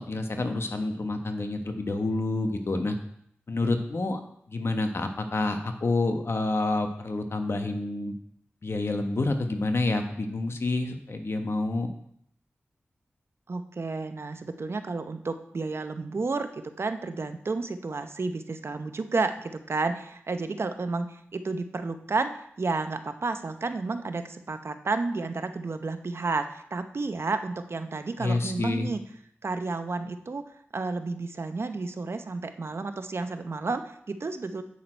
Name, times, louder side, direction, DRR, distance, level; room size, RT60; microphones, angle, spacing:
voice 1, 0.0-3.0 3.5-4.2 4.5-8.1 8.6-11.9 28.2-28.9, left 2 dB, 60° left, 6 dB, 1.1 m, -28 dB
voice 2, 13.5-29.0 29.4-30.4 30.7-34.6, right 3 dB, 60° right, 9 dB, 0.7 m, -31 dB
8.5 x 6.4 x 4.4 m, 0.69 s
cardioid pair, 45°, 5 cm